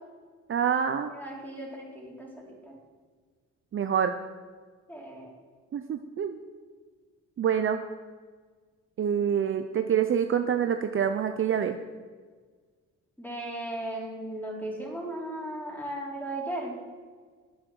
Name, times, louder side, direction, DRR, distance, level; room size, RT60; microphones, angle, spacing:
voice 1, 0.5-1.1 3.7-4.1 5.7-6.4 7.4-7.8 9.0-11.8, right 8 dB, 45° right, 7 dB, 0.6 m, -26 dB
voice 2, 1.1-2.8 4.9-5.3 13.2-16.7, right 1 dB, 5° left, -2 dB, 3.6 m, -36 dB
10.5 x 8.2 x 6.2 m, 1.5 s
cardioid pair, 90°, 30 cm